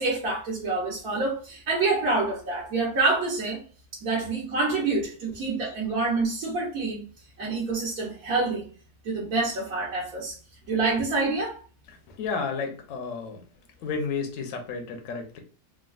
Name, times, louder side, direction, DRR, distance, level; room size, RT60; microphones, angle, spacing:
voice 1, 0.0-3.6 4.0-7.0 7.4-8.7 9.0-10.3 10.7-11.6, right 3 dB, 65° right, -5 dB, 1.3 m, -27 dB
voice 2, 11.9-13.4 13.8-15.4, left 5 dB, 65° left, 3 dB, 0.9 m, -32 dB
3.5 x 2.2 x 2.3 m, 0.38 s
omnidirectional pair, 1.7 m